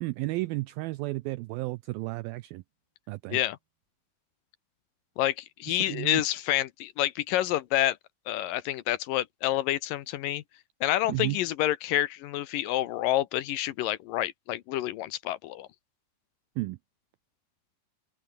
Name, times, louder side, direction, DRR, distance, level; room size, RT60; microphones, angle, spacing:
voice 1, 0.0-2.6 3.1-3.4 5.7-6.2 11.1-11.4 16.6-16.8, right 20 dB, 85° right, 2.1 m, -33 dB
voice 2, 5.2-8.0 8.3-10.4 10.8-15.7, left 14 dB, 70° left, 2.2 m, -28 dB
open air
omnidirectional pair, 4.8 m